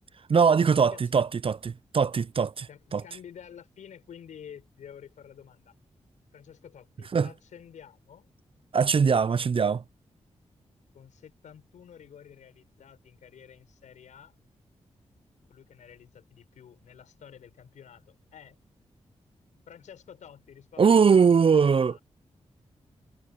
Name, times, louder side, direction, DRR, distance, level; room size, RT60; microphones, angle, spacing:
voice 1, 0.3-3.0 7.1-7.3 8.7-9.8 20.8-22.0, right 6 dB, 45° right, 0.5 m, -21 dB
voice 2, 0.9-1.2 2.7-5.7 6.3-8.3 10.9-14.3 15.5-18.6 19.7-22.0, left 8 dB, 85° left, 5.3 m, -50 dB
supercardioid pair, 45°, 12 cm